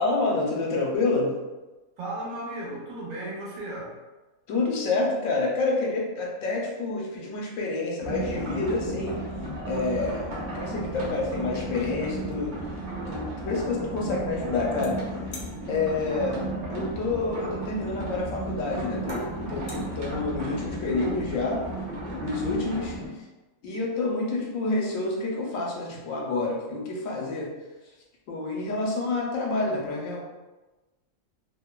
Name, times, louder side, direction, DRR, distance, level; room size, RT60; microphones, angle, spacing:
voice 1, 0.0-1.3 4.5-9.2 9.7-12.6 13.1-15.0 15.7-16.4 16.7-21.6 22.1-23.0 23.6-27.5 28.3-30.2, left 3 dB, 80° left, -2 dB, 1.0 m, -28 dB
voice 2, 2.0-4.0 25.9-26.0, right 1 dB, 80° right, -5 dB, 1.2 m, -35 dB
sound 1, 8.0-23.1, right 1 dB, 55° right, 0.6 m, -34 dB
sound 2, 11.0-11.1 11.4-12.8 14.8-14.9 15.3-15.5 17.4-17.5 18.4-18.5 19.1-19.2 19.5-19.8, left 2 dB, 60° left, 0.6 m, -44 dB
2.9 x 2.1 x 2.2 m, 1.1 s
omnidirectional pair, 1.4 m